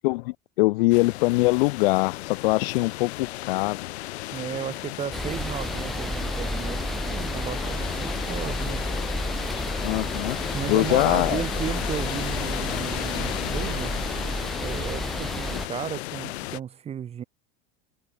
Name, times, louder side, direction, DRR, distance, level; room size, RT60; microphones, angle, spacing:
voice 1, 0.0-3.8 9.8-10.4 10.7-11.4, left 23 dB, 60° left, 1.5 m, -23 dB
sound 1, 0.9-16.6, left 18 dB, 80° left, 4.1 m, -35 dB
voice 2, 4.3-8.9 10.5-13.9 14.2-17.2, right 8 dB, 20° right, 2.6 m, -34 dB
sound 2, 5.1-15.7, equal, ahead, 2.7 m, -31 dB
supercardioid pair, 175°, 32 cm